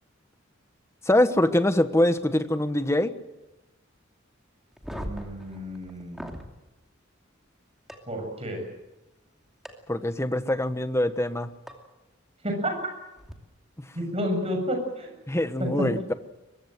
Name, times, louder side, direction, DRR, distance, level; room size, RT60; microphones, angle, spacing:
voice 1, 1.1-3.1 9.9-11.5 13.8-13.9 15.3-16.1, left 1 dB, 15° left, 10 dB, 1.2 m, -24 dB
sound 1, 4.7-6.5 7.9-8.0 9.6-9.7 11.7-11.8 13.2-13.3, equal, ahead, 2.6 m, -39 dB
voice 2, 4.9-6.4 8.1-8.6 12.4-12.7 13.9-15.1 15.6-15.7, equal, 30° right, 4 dB, 7.3 m, -31 dB
22.5 x 22.5 x 7.8 m, 1.0 s
head